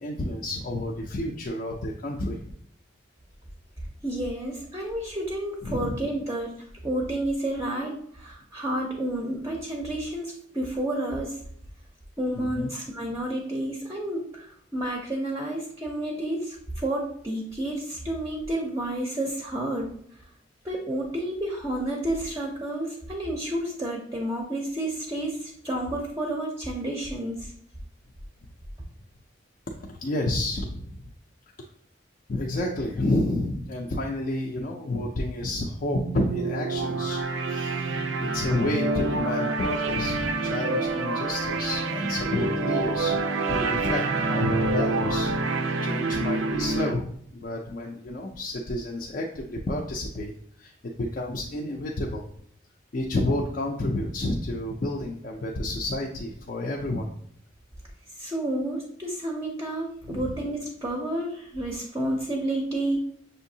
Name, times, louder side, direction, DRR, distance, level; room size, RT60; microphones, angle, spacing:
voice 1, 0.0-2.4 5.6-5.9 12.4-12.7 29.7-30.9 32.3-37.2 37.5-37.8 38.2-43.2 43.5-45.3 45.8-50.3 50.6-50.7 51.0-52.2 52.9-57.1 60.1-60.3, left 1 dB, 45° left, -1 dB, 0.4 m, -30 dB
voice 2, 4.0-6.5 6.8-11.4 12.2-19.9 20.6-27.5 58.2-63.0, right 1 dB, 15° right, -1 dB, 0.5 m, -30 dB
sound 1, 35.8-46.9, right 3 dB, 85° right, 0.5 m, -27 dB
6.1 x 2.7 x 2.7 m, 0.66 s
head